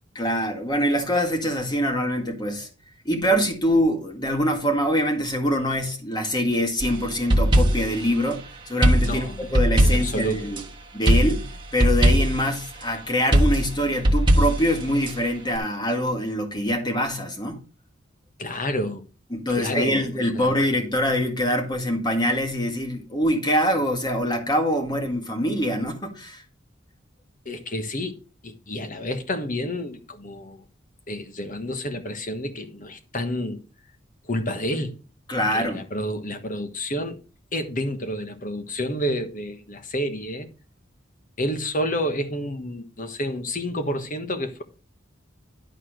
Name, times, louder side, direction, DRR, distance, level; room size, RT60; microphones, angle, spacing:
voice 1, 0.2-2.7 3.1-10.6 10.9-11.4 11.7-17.6 19.3-26.4 35.3-35.8, equal, 20° left, 1.8 m, -24 dB
sound 1, 6.8-8.0 8.8-10.6 11.1-12.5 13.3-15.1, right 1 dB, 25° right, 1.3 m, -20 dB
voice 2, 9.0-9.5 9.8-10.5 18.4-19.0 19.5-20.0 20.3-20.5 27.4-28.2 28.4-30.6 31.1-33.6 34.3-34.9 35.5-37.2 37.5-40.5 41.4-44.6, equal, 40° left, 1.3 m, -29 dB
11.5 x 4.2 x 6.6 m
head